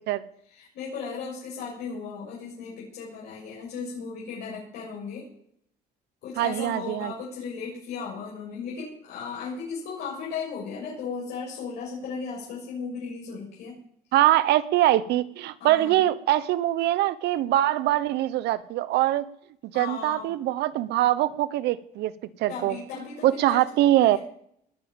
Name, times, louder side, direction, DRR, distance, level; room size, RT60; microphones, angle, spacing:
voice 1, 0.5-5.3 6.2-13.8 15.6-16.0 19.7-20.3 22.5-24.2, left 5 dB, 80° left, -6 dB, 7.1 m, -36 dB
voice 2, 6.4-7.1 14.1-19.3 19.6-22.1 22.4-22.8 23.2-24.2, right 14 dB, 80° right, 16 dB, 1.0 m, -23 dB
21.0 x 7.4 x 8.8 m, 0.69 s
cardioid pair, 110°, 17 cm